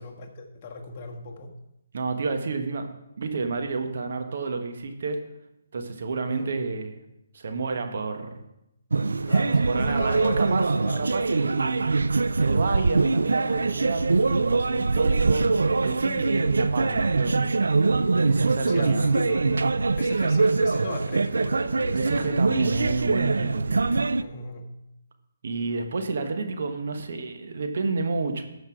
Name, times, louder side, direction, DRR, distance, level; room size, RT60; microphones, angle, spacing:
voice 1, 0.0-1.5 6.3-6.5 9.3-11.1 16.3-16.5 18.7-22.4 24.2-24.6, left 3 dB, 35° left, 1 dB, 1.5 m, -37 dB
voice 2, 1.9-2.9 3.2-5.2 5.7-7.0 7.3-8.4 9.7-10.7 11.0-12.0 12.4-15.5 15.8-17.7 18.2-19.1 21.9-24.0 25.4-28.5, right 4 dB, 60° right, 5 dB, 1.2 m, -30 dB
sound 1, 8.9-24.2, right 3 dB, 80° right, 0.4 m, -23 dB
13.5 x 5.6 x 4.6 m, 0.85 s
figure-of-eight pair, 145°, 0 cm